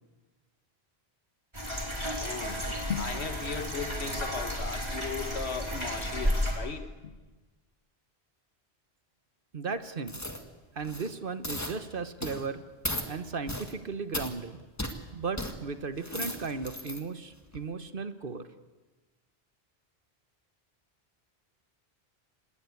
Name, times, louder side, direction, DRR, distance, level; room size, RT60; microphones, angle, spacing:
sound 1, 1.5-6.5, equal, 25° right, 4.4 m, -32 dB
voice 1, 2.2-7.1, left 5 dB, 85° left, 9 dB, 1.7 m, -37 dB
voice 2, 9.5-10.2 10.7-12.6 13.1-14.6 15.1-18.5, right 4 dB, 55° right, 11 dB, 1.3 m, -36 dB
sound 2, 10.1-10.4 10.8-11.1 11.4-11.8 12.2-12.5 12.8-13.1 13.5-13.7 14.1-14.3 14.8-15.0 15.4-15.5 15.9-17.0 17.5-17.6, left 1 dB, 15° left, 1.9 m, -36 dB
26.0 x 20.0 x 8.4 m, 1.2 s
omnidirectional pair, 1.1 m